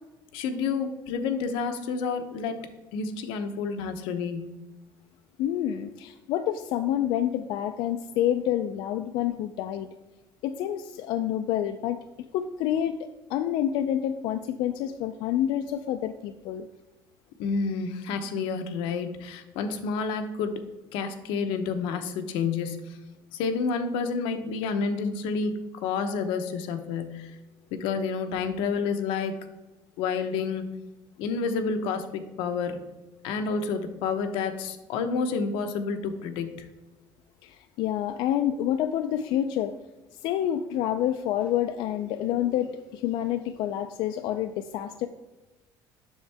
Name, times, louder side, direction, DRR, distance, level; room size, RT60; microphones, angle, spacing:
voice 1, 0.3-2.7 2.9-4.5 17.4-20.5 20.9-23.0 23.3-27.3 27.7-29.4 30.0-30.7 31.2-32.8 33.2-36.7, left 5 dB, 90° left, 7 dB, 0.9 m, -29 dB
voice 2, 5.4-9.9 10.4-12.0 12.3-12.9 13.3-16.7 37.4-39.7 40.2-45.1, left 11 dB, 65° left, 7 dB, 0.4 m, -28 dB
7.3 x 6.4 x 3.4 m, 1.1 s
cardioid pair, 170°, 9 cm